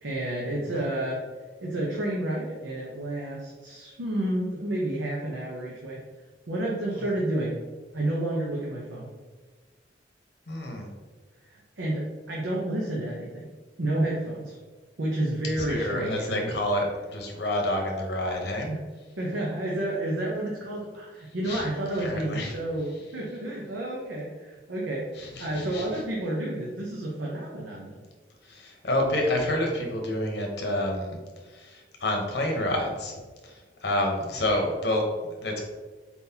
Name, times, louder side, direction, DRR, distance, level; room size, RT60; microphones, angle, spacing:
voice 1, 0.0-1.2 1.6-6.0 6.5-7.6 7.9-9.1 11.4-13.5 13.8-14.6 15.0-16.5 18.7-18.8 19.2-28.0, right 1 dB, 75° right, -4 dB, 0.7 m, -30 dB
voice 2, 10.5-10.9 15.6-18.7 21.4-21.7 22.0-22.5 25.1-25.9 28.4-33.1 33.4-35.0 35.4-35.6, left 1 dB, 60° left, 1 dB, 0.9 m, -29 dB
4.2 x 3.9 x 2.8 m, 1.4 s
head